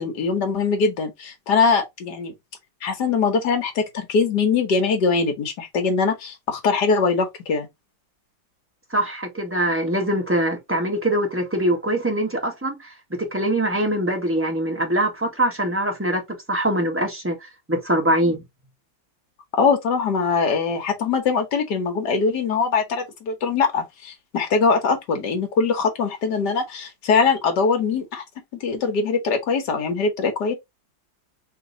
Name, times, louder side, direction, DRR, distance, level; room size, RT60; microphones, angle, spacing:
voice 1, 0.0-2.3 2.8-7.7 19.6-28.2 28.6-30.5, left 5 dB, 60° left, 1.8 m, -22 dB
voice 2, 8.9-16.2 16.5-18.4, right 1 dB, 10° right, 1.0 m, -23 dB
3.8 x 3.0 x 3.8 m
omnidirectional pair, 2.1 m